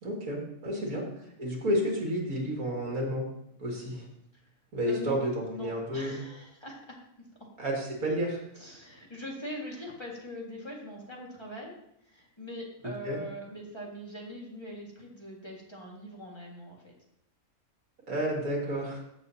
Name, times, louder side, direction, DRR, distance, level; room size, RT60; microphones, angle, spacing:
voice 1, 0.0-1.1 1.4-3.3 3.6-4.0 4.7-6.2 7.6-8.4 13.0-13.2 18.1-19.0, equal, 90° right, -1 dB, 2.6 m, -31 dB
voice 2, 4.8-7.0 8.6-11.7 12.1-16.9 18.6-18.8, equal, 20° left, -3 dB, 1.8 m, -42 dB
14.5 x 7.1 x 2.8 m, 0.76 s
omnidirectional pair, 1.5 m